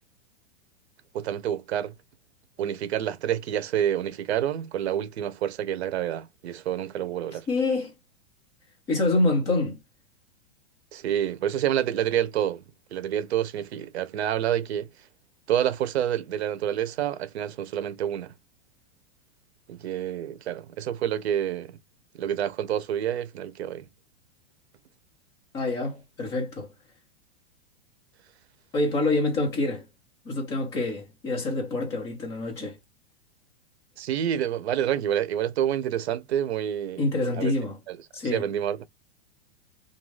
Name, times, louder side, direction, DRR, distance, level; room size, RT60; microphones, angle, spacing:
voice 1, 1.1-1.9 2.6-7.4 10.9-12.6 12.9-14.9 15.5-18.3 19.7-21.7 22.2-23.8 34.0-37.0 37.4-37.5 37.9-38.0 38.3-38.8, right 10 dB, 70° right, 0.7 m, -28 dB
voice 2, 7.3-7.9 8.9-9.8 25.5-26.7 28.7-29.9 30.2-32.8 37.0-37.8 38.1-38.5, left 2 dB, 10° left, 0.5 m, -26 dB
2.6 x 2.3 x 3.0 m
supercardioid pair, 175°, 33 cm